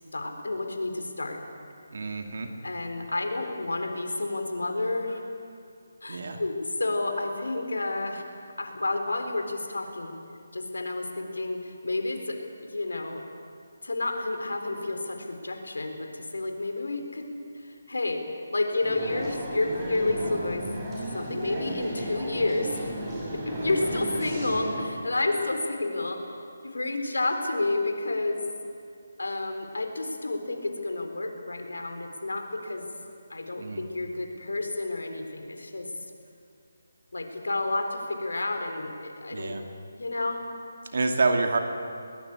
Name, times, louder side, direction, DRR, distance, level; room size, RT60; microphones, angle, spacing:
voice 1, 0.1-1.4 2.6-5.2 6.0-8.2 8.6-10.2 10.5-13.2 13.8-17.3 17.5-18.2 18.5-20.7 21.0-22.8 23.5-26.2 26.6-28.5 29.2-32.9 33.3-35.9 37.1-39.6 39.9-40.5, left 2 dB, 80° left, 5 dB, 4.0 m, -30 dB
voice 2, 1.9-2.5 6.1-6.4 33.6-33.8 39.3-39.6 40.9-41.6, right 3 dB, 60° right, 4 dB, 2.5 m, -27 dB
sound 1, 18.8-24.9, right 1 dB, 20° right, 7.3 m, -34 dB
22.0 x 20.0 x 8.3 m, 2.4 s
figure-of-eight pair, 155°, 0 cm